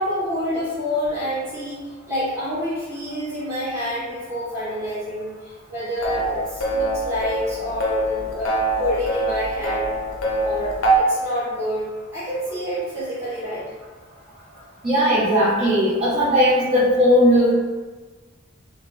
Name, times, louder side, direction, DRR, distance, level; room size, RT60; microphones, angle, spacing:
voice 1, 0.0-9.9 10.4-13.6, equal, 15° right, -12 dB, 1.4 m, -28 dB
sound 1, 6.0-11.0, right 2 dB, 80° left, 0.5 m, -23 dB
voice 2, 14.8-17.5, equal, 30° right, -10 dB, 0.6 m, -17 dB
3.0 x 2.1 x 3.2 m, 1.3 s
head